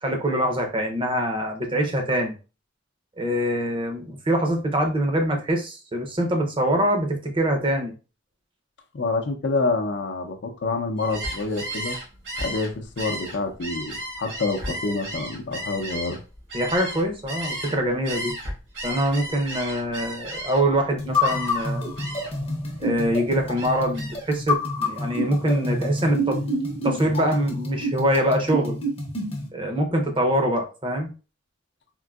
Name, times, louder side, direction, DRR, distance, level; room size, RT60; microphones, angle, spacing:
voice 1, 0.0-2.4 3.2-7.9 16.5-18.3 18.8-21.9 22.8-26.4 26.8-28.8 29.5-31.1, right 1 dB, 30° right, 0.6 m, -24 dB
voice 2, 8.9-12.0 12.4-16.2, left 3 dB, 65° left, 0.5 m, -27 dB
Gull seagull, 11.0-17.8 18.0-20.8 21.2-21.7 22.0-22.4 22.8-24.3, right 1 dB, 75° right, 1.5 m, -34 dB
sound 1, 21.0-29.5, left 1 dB, 30° left, 0.7 m, -28 dB
3.7 x 2.5 x 2.3 m
head